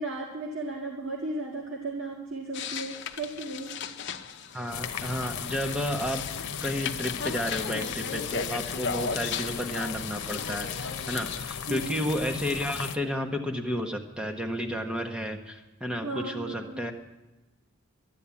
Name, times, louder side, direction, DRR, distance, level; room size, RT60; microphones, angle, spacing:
voice 1, 0.0-3.7 11.7-12.0 16.0-16.8, right 2 dB, 60° right, -2 dB, 1.7 m, -35 dB
sound 1, 2.5-11.4, left 6 dB, 55° left, 0.8 m, -37 dB
voice 2, 4.5-6.2 6.6-16.9, equal, 5° right, 4 dB, 1.0 m, -32 dB
sound 2, 4.7-13.0, left 7 dB, 85° left, 0.9 m, -36 dB
12.0 x 11.5 x 8.4 m, 1.1 s
head